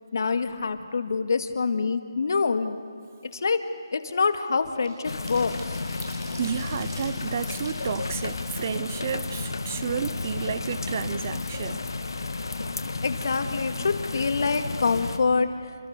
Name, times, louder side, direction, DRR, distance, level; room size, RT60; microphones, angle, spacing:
voice 1, 0.1-2.8 3.3-3.6 3.9-5.8 13.0-15.5, left 4 dB, 50° left, 2.1 m, -26 dB
sound 1, 2.8-3.0 3.4-9.8 10.2-10.3 10.6-11.5 11.8-12.0 12.3-12.6, right 2 dB, 50° right, 7.1 m, -49 dB
sound 2, 5.0-15.2, left 3 dB, 70° left, 2.2 m, -32 dB
voice 2, 6.4-11.9, right 8 dB, 30° right, 0.6 m, -31 dB
sound 3, 8.7-13.9, right 2 dB, 65° right, 4.8 m, -47 dB
29.5 x 26.5 x 6.8 m
hypercardioid pair, 170°, 2 cm